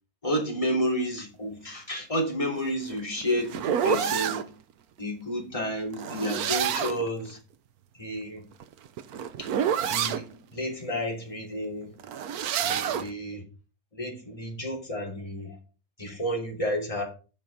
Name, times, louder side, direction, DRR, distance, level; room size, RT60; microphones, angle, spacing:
voice 1, 0.2-4.5 5.0-7.4 8.0-8.4 9.4-9.5 9.9-11.9 12.6-13.4 13.9-15.6 16.0-17.0, equal, 20° left, -1 dB, 3.1 m, -31 dB
sound 1, 2.7-4.5 5.9-7.1 8.5-10.2 12.0-13.1, right 9 dB, 70° right, 1.2 m, -28 dB
9.1 x 6.0 x 5.3 m, 0.34 s
omnidirectional pair, 1.7 m